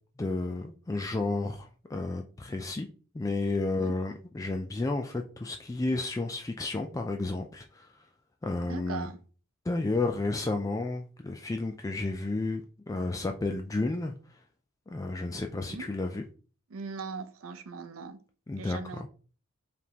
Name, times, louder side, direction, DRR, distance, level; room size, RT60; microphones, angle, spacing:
voice 1, 0.2-2.9 3.1-7.9 8.4-9.1 9.7-14.1 14.9-16.2 18.5-19.1, left 2 dB, 15° left, 0.3 m, -32 dB
voice 2, 8.7-9.2 15.5-15.9 16.7-18.2 18.6-19.1, right 5 dB, 70° right, 0.6 m, -40 dB
4.9 x 3.4 x 2.8 m
head